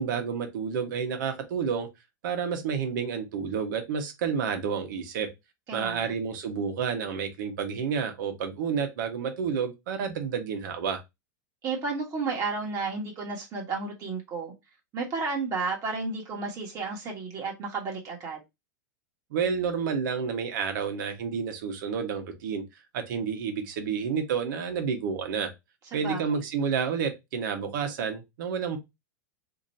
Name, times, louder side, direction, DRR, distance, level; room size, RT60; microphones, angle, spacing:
voice 1, 0.0-1.9 2.2-5.3 5.7-11.0 19.3-22.6 22.9-25.5 25.9-28.8, right 6 dB, 70° right, 1.1 m, -30 dB
voice 2, 5.7-6.1 11.6-14.5 14.9-18.4 25.9-26.4, right 4 dB, 30° right, 1.3 m, -32 dB
2.9 x 2.6 x 4.0 m
supercardioid pair, 140°, 11 cm